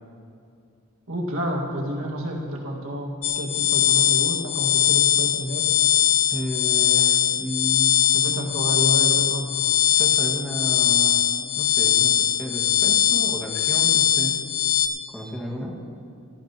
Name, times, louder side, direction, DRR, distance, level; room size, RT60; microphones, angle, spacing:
voice 1, 1.1-5.7 8.1-9.7, right 1 dB, 80° right, -1 dB, 1.9 m, -30 dB
sound 1, 3.2-14.9, left 11 dB, 90° left, 0.7 m, -21 dB
voice 2, 6.3-8.0 9.9-11.3 11.6-14.4 15.1-15.8, equal, 5° left, -3 dB, 1.8 m, -32 dB
17.5 x 14.0 x 2.9 m, 2.4 s
head